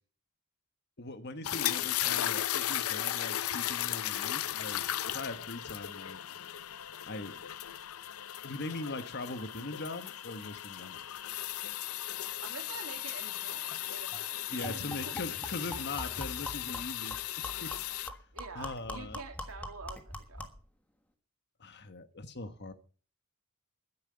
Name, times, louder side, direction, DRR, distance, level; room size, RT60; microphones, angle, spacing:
voice 1, 1.0-6.2 7.1-7.4 8.4-11.0 14.5-18.2 18.5-19.2 21.6-22.7, left 2 dB, 50° left, 1.4 m, -41 dB
sound 1, 1.4-18.1, left 12 dB, 85° left, 0.6 m, -36 dB
voice 2, 12.4-15.2 15.7-15.8 18.3-20.5, right 4 dB, 85° right, 2.8 m, -47 dB
sound 2, 13.7-13.8 14.1-14.2 14.6-20.7, equal, 5° left, 1.4 m, -43 dB
12.0 x 10.5 x 6.8 m
head